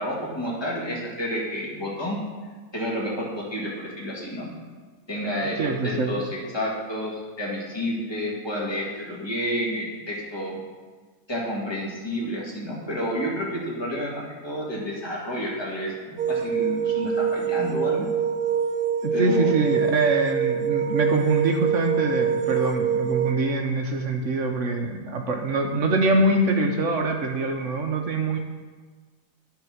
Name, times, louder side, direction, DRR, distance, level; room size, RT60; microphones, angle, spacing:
voice 1, 0.0-2.2 2.7-4.5 5.1-6.3 6.5-10.6 11.3-18.1 19.1-19.5, equal, 15° left, -5 dB, 1.8 m, -30 dB
voice 2, 5.3-6.2 19.0-28.4, right 2 dB, 60° right, 4 dB, 0.9 m, -24 dB
sound 1, 16.2-23.3, right 7 dB, 85° right, 1.2 m, -25 dB
10.0 x 3.9 x 6.1 m, 1.4 s
omnidirectional pair, 1.7 m